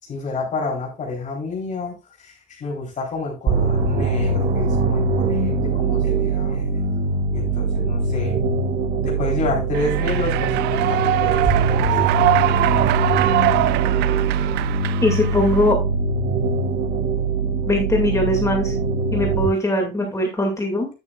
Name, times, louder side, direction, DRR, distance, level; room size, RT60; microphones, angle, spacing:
voice 1, 0.0-6.6 7.3-8.5 9.0-12.1 12.6-12.7, left 3 dB, 45° left, -1 dB, 3.5 m, -29 dB
sound 1, 3.5-19.5, right 3 dB, 55° right, 1.4 m, -22 dB
Human voice / Clapping / Cheering, 9.7-15.7, right 17 dB, 80° right, 0.4 m, -23 dB
voice 2, 15.0-15.8 17.7-18.7 19.1-20.9, left 1 dB, 15° left, 2 dB, 2.2 m, -20 dB
9.7 x 8.4 x 2.4 m, 0.28 s
cardioid pair, 110°, 17 cm